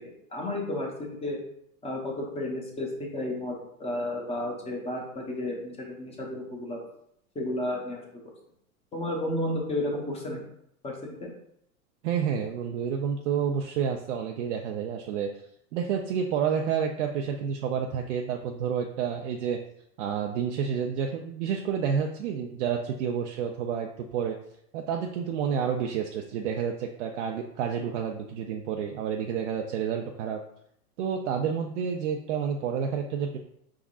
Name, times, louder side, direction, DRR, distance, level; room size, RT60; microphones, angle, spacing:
voice 1, 0.3-1.4 1.8-3.5 3.8-6.8 7.3-8.2 8.9-10.4 10.8-10.9 11.2-11.3, left 1 dB, 15° left, -1 dB, 0.9 m, -32 dB
voice 2, 12.0-15.3 15.7-19.6 20.0-24.4 24.7-30.4 31.0-33.4, right 7 dB, 55° right, 2 dB, 0.5 m, -29 dB
5.0 x 3.6 x 2.4 m, 0.74 s
hypercardioid pair, 130°, 46 cm